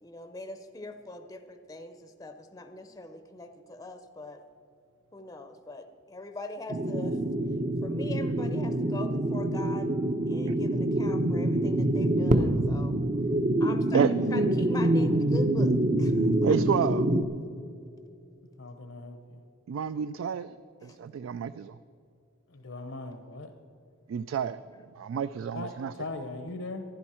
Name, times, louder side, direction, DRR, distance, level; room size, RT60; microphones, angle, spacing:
voice 1, 0.0-4.4 5.1-7.2 7.8-9.9 10.3-13.0 13.6-15.7 16.0-16.2 20.8-21.0 22.7-22.8, left 2 dB, 15° left, 8 dB, 0.6 m, -41 dB
sound 1, 6.7-17.2, right 1 dB, 40° right, 0.6 m, -26 dB
voice 2, 16.4-17.1 19.7-20.6 20.8-21.8 24.1-24.6 25.0-25.9, right 7 dB, 75° right, 13 dB, 0.3 m, -29 dB
voice 3, 18.6-19.4 22.5-23.5 25.5-26.8, left 2 dB, 70° left, 7 dB, 0.7 m, -39 dB
15.5 x 11.5 x 4.3 m, 2.6 s
head